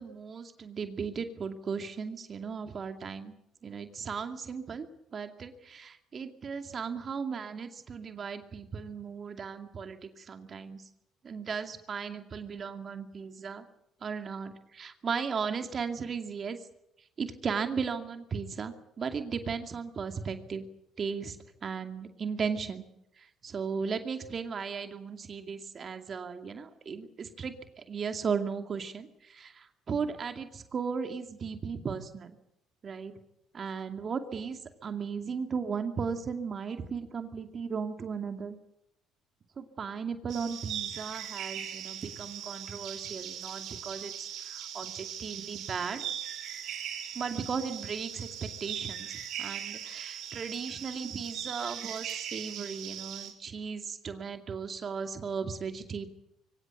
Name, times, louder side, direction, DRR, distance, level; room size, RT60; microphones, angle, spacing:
voice 1, 0.0-3.3 3.6-4.9 5.1-10.8 11.2-13.6 14.0-16.6 17.2-20.7 21.0-21.4 21.6-22.8 23.2-32.3 32.8-33.1 33.5-38.6 39.6-46.1 47.1-56.1, right 6 dB, 45° right, 7 dB, 2.4 m, -36 dB
sound 1, 40.3-53.3, right 9 dB, 65° right, 4.6 m, -40 dB
23.5 x 17.0 x 9.2 m, 0.80 s
supercardioid pair, 75°, 0 cm